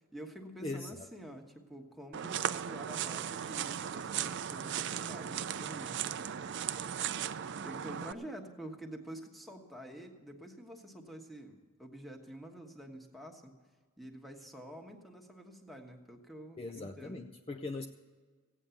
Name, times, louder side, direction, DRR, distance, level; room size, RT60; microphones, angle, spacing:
voice 1, 0.1-6.5 7.6-13.5 14.0-17.2, right 1 dB, ahead, 2 dB, 1.3 m, -48 dB
voice 2, 0.6-1.1 16.6-17.9, left 2 dB, 25° left, 5 dB, 0.5 m, -40 dB
sound 1, 2.1-8.1, right 9 dB, 55° right, 0.4 m, -37 dB
16.0 x 9.0 x 7.0 m, 1.5 s
head